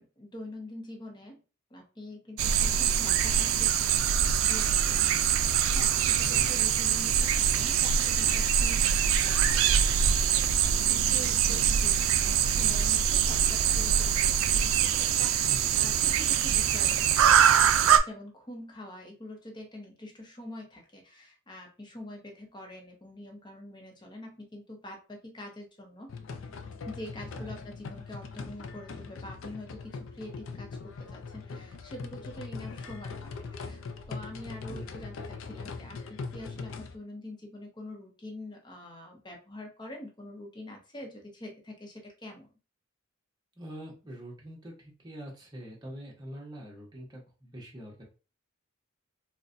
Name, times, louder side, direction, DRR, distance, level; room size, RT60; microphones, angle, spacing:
voice 1, 0.0-1.4 1.7-3.8 4.4-9.7 10.0-10.5 10.9-17.0 17.5-26.1 26.9-33.8 34.1-42.5, left 1 dB, 20° left, 1 dB, 0.8 m, -45 dB
sound 1, 2.4-18.0, right 8 dB, 85° right, 0.3 m, -24 dB
voice 2, 6.2-6.7 15.4-15.9 27.2-27.6 34.7-35.1 43.6-48.0, equal, 20° right, -2 dB, 0.9 m, -44 dB
sound 2, 26.1-37.0, left 4 dB, 70° left, 0.4 m, -41 dB
3.9 x 2.1 x 2.5 m, 0.33 s
head